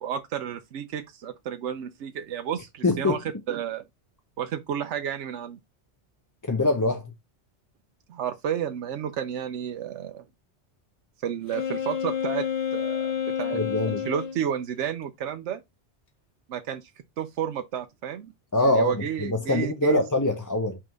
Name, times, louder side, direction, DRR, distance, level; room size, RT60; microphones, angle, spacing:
voice 1, 0.0-3.8 4.4-5.6 8.1-10.2 11.2-12.5 12.7-15.6 16.5-16.9 17.2-18.3 18.6-20.0, right 9 dB, 85° right, 1.0 m, -31 dB
voice 2, 2.8-3.2 6.4-7.0 13.5-14.0 18.5-18.9 19.2-20.8, left 2 dB, 20° left, 0.6 m, -23 dB
Wind instrument woodwind instrument, 11.5-14.4, left 8 dB, 75° left, 1.4 m, -29 dB
5.8 x 3.7 x 5.0 m
omnidirectional pair, 1.2 m